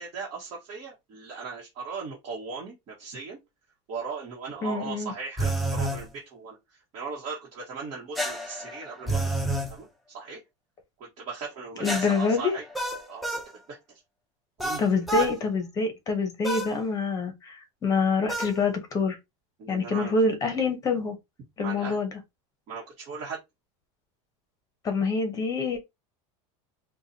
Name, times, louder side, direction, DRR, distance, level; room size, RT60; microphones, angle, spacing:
voice 1, 0.0-3.4 3.9-9.3 9.7-10.4 11.0-12.6 13.1-13.3 13.7-13.8 14.6-14.8 15.2-15.3 19.6-20.2 21.6-22.0 22.7-23.4, right 5 dB, 40° right, 1.3 m, -38 dB
voice 2, 4.6-5.1 11.8-12.5 14.8-19.2 19.7-21.2 21.6-22.1 24.8-25.8, left 4 dB, 20° left, 0.9 m, -26 dB
sound 1, 5.4-6.0 8.2-9.7 11.8-13.5 14.6-15.3 16.4-16.7 18.3-18.6, right 1 dB, ahead, 0.5 m, -29 dB
4.7 x 2.3 x 2.7 m
supercardioid pair, 160°, 16 cm